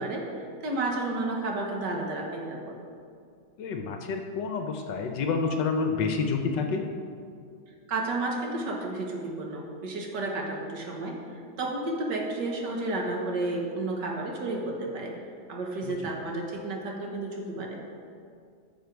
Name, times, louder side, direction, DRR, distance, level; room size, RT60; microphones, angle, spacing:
voice 1, 0.0-2.8 7.9-11.2 11.6-15.1 15.5-17.8, right 2 dB, 65° right, 0 dB, 1.7 m, -32 dB
voice 2, 3.6-6.8 15.8-16.1, left 4 dB, 70° left, 4 dB, 1.3 m, -29 dB
14.0 x 4.9 x 4.6 m, 2.3 s
omnidirectional pair, 2.1 m